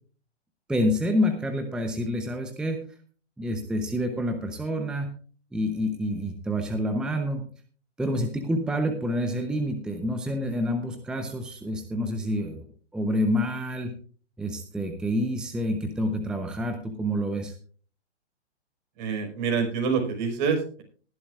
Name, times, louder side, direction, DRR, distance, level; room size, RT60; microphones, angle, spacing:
voice 1, 0.7-2.8 3.4-5.1 5.5-7.4 8.0-12.7 12.9-13.9 14.4-17.6, equal, ahead, 5 dB, 0.8 m, -28 dB
voice 2, 19.0-20.8, right 5 dB, 40° right, 2 dB, 4.7 m, -26 dB
19.0 x 11.0 x 2.5 m, 0.42 s
hypercardioid pair, 130°, 35 cm